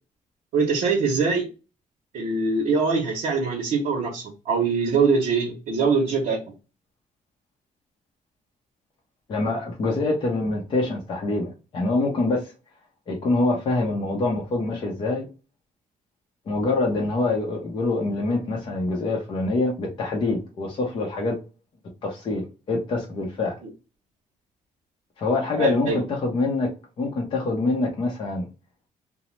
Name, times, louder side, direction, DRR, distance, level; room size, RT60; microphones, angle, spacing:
voice 1, 0.5-1.4 2.1-6.4 25.6-26.0, right 4 dB, 65° right, 0.7 m, -23 dB
voice 2, 9.3-12.4 13.1-15.3 16.5-21.4 22.0-23.5 25.2-26.7 27.0-28.4, left 2 dB, 35° left, 0.6 m, -25 dB
2.8 x 2.0 x 3.0 m
cardioid pair, 175°, 14 cm